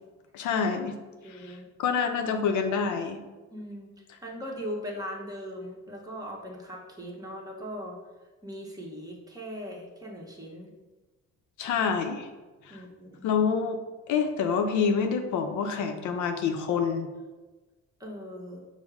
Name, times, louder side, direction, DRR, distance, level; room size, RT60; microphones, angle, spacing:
voice 1, 0.3-0.9 1.3-3.2 11.6-12.3 12.6-12.8 13.2-13.8 14.1-17.1, left 6 dB, 75° left, 5 dB, 0.5 m, -27 dB
voice 2, 1.2-1.7 3.5-3.9 4.2-8.0 8.4-10.7 12.7-13.4 18.0-18.6, equal, 10° right, -2 dB, 1.0 m, -39 dB
5.2 x 2.0 x 4.7 m, 1.2 s
cardioid pair, 90°, 30 cm